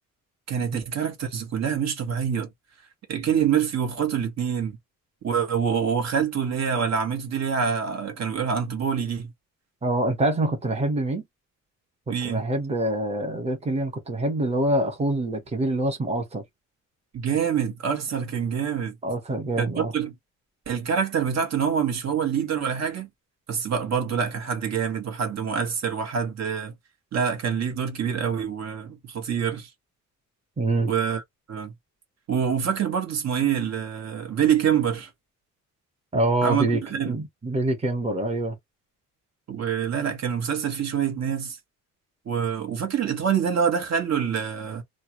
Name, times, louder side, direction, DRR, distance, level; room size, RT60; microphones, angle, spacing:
voice 1, 0.5-2.5 3.1-4.8 5.2-9.3 12.1-12.5 17.1-18.9 19.6-20.1 20.7-23.1 23.5-26.7 27.1-29.7 30.9-31.2 31.5-31.7 32.3-35.1 36.4-37.2 39.5-41.6 42.2-44.8, right 7 dB, 55° right, 1.4 m, -26 dB
voice 2, 9.8-11.2 12.2-16.4 19.0-19.9 30.6-30.9 36.1-38.6, right 1 dB, 20° right, 1.2 m, -25 dB
3.3 x 2.4 x 2.9 m
cardioid pair, 135°, 32 cm